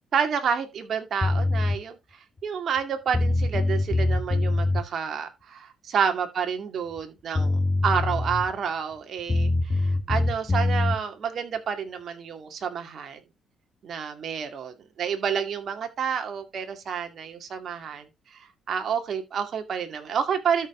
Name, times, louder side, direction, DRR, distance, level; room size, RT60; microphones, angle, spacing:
voice 1, 0.1-2.0 2.4-13.2 13.8-18.0 18.3-20.7, right 7 dB, 60° right, 2.3 m, -29 dB
sound 1, 1.2-1.8 2.8-2.9 3.1-4.8 7.0-7.1 7.3-8.5 9.3-11.0, left 2 dB, 30° left, 1.6 m, -24 dB
12.5 x 5.1 x 3.8 m
supercardioid pair, 65°, 0 cm